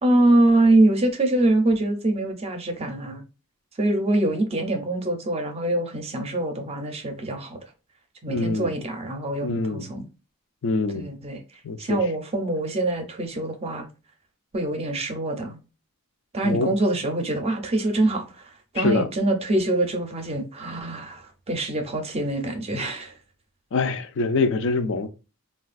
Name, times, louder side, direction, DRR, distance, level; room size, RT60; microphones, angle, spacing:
voice 1, 0.0-3.2 3.8-7.6 8.2-10.1 10.9-11.4 11.8-13.9 14.5-15.6 16.3-18.2 18.7-23.1, right 2 dB, 25° right, 0.5 m, -24 dB
voice 2, 8.3-8.8 9.4-9.9 10.6-11.1 11.6-12.0 16.4-16.7 18.8-19.1 23.7-25.1, left 3 dB, 55° left, 0.4 m, -24 dB
3.2 x 2.3 x 2.4 m
head